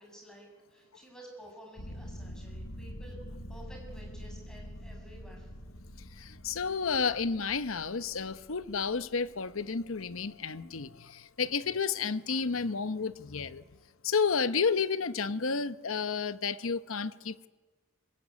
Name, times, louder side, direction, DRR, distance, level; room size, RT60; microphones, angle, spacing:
voice 1, 0.0-5.5 13.7-13.8, right 1 dB, 5° left, 7.1 m, -52 dB
sound 1, 1.8-10.2, equal, 65° left, 2.5 m, -46 dB
voice 2, 6.2-13.6 14.0-17.5, left 5 dB, 85° left, 0.9 m, -31 dB
23.5 x 21.0 x 9.6 m
head